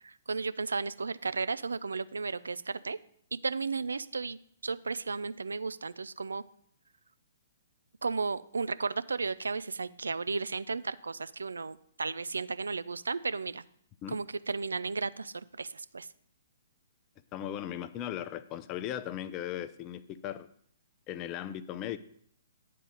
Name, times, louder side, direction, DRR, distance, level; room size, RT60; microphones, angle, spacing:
voice 1, 0.0-3.0 3.3-6.4 8.0-13.6 14.1-16.1, right 4 dB, 70° right, 15 dB, 0.3 m, -34 dB
voice 2, 17.3-20.5 21.1-22.0, left 11 dB, 25° left, 13 dB, 0.4 m, -37 dB
9.3 x 3.8 x 6.6 m, 0.65 s
figure-of-eight pair, 120°, 0 cm